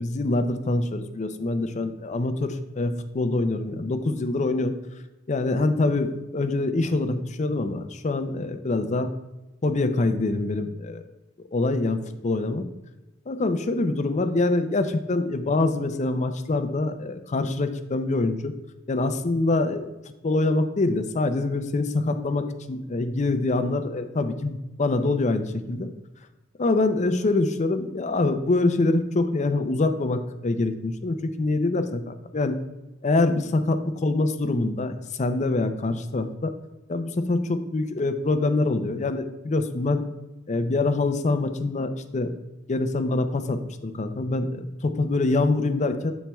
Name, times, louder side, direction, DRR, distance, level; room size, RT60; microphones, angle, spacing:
voice 1, 0.0-4.7 5.3-9.1 9.6-11.0 11.5-12.7 13.3-18.5 18.9-19.9 20.2-25.9 26.6-32.6 33.0-36.5 36.9-40.0 40.5-42.3 42.7-46.1, left 2 dB, 35° left, 9 dB, 0.5 m, -25 dB
7.3 x 7.1 x 2.3 m, 1.0 s
head